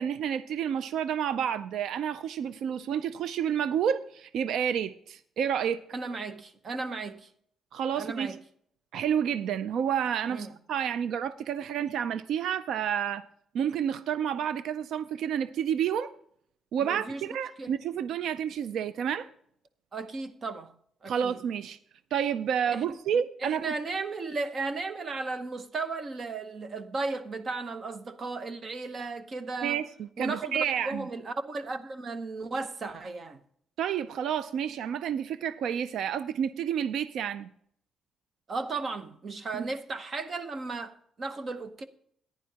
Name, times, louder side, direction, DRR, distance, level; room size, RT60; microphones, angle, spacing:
voice 1, 0.0-5.8 7.7-8.4 8.9-13.2 13.5-16.1 16.7-19.3 21.1-21.8 22.1-23.7 29.6-29.9 30.2-31.1 33.8-37.5, right 8 dB, 75° right, 0.4 m, -30 dB
voice 2, 5.9-7.3 7.9-8.4 10.3-10.5 16.8-17.2 17.6-17.8 19.9-20.7 21.0-21.4 22.7-23.0 23.4-29.8 30.2-33.4 38.5-41.9, right 3 dB, 35° right, 0.8 m, -35 dB
14.5 x 10.0 x 2.8 m
cardioid pair, 140°, 0 cm